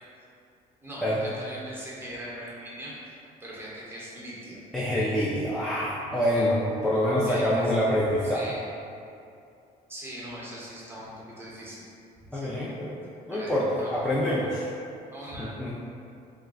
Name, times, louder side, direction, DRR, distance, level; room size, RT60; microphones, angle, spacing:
voice 1, 0.8-3.1 3.4-4.6 7.3-7.7 8.2-8.6 9.9-11.8 12.2-12.5 13.3-14.2 15.1-15.7, equal, 15° right, -7 dB, 0.8 m, -41 dB
voice 2, 4.7-8.5 12.3-13.0 13.3-14.6 15.4-15.7, equal, 5° left, -7 dB, 0.3 m, -26 dB
2.3 x 2.1 x 3.6 m, 2.5 s
cardioid pair, 110°, 17 cm